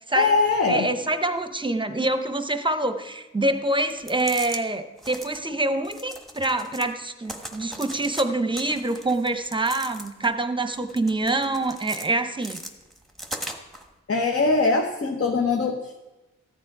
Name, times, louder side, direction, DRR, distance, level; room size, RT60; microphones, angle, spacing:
voice 1, 0.1-0.9 14.1-16.0, left 3 dB, 50° left, 3 dB, 0.9 m, -22 dB
voice 2, 0.7-12.6, right 2 dB, 15° right, 9 dB, 0.8 m, -26 dB
sound 1, 3.9-4.6 5.0-5.4 5.8-6.9 7.2-8.2 8.5-10.3 10.7-12.1 12.4-13.8, equal, ahead, 1.2 m, -38 dB
14.5 x 9.2 x 4.7 m, 1.1 s
wide cardioid pair, 105°, 29 cm